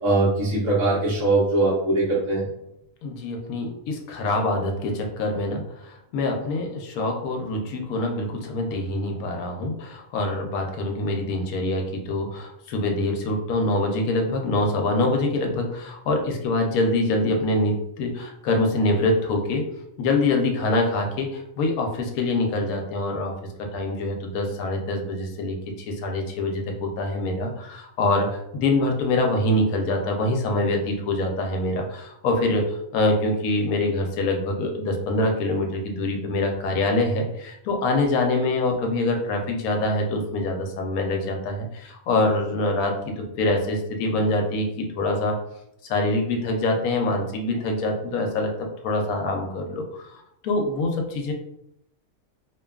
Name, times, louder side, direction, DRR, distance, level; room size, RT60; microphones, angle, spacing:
voice 1, 0.0-2.4, right 2 dB, 65° right, -8 dB, 1.1 m, -21 dB
voice 2, 3.0-19.6 20.0-23.3 23.6-45.4 45.9-51.3, left 2 dB, 85° left, 2 dB, 1.1 m, -25 dB
2.8 x 2.2 x 2.3 m, 0.78 s
omnidirectional pair, 1.5 m